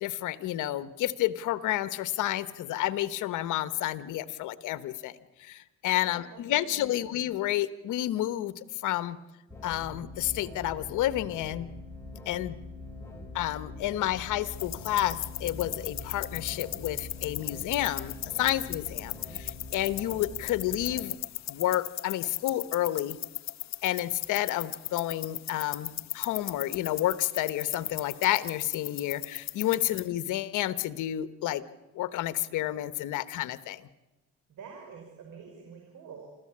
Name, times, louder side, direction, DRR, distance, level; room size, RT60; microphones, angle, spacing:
voice 1, 0.0-5.1 5.4-8.5 8.8-9.2 9.6-11.7 12.3-12.6 13.3-21.2 21.5-23.2 23.8-31.6 31.9-33.8, left 14 dB, 90° left, 14 dB, 1.1 m, -30 dB
voice 2, 5.9-7.1 29.7-30.0 34.5-36.3, right 6 dB, 80° right, 2 dB, 5.1 m, -48 dB
sound 1, 9.5-21.0, left 2 dB, 10° left, 5.0 m, -43 dB
sound 2, 14.5-30.1, left 13 dB, 65° left, 0.8 m, -38 dB
27.5 x 14.0 x 8.6 m, 1.1 s
cardioid pair, 90°, 30 cm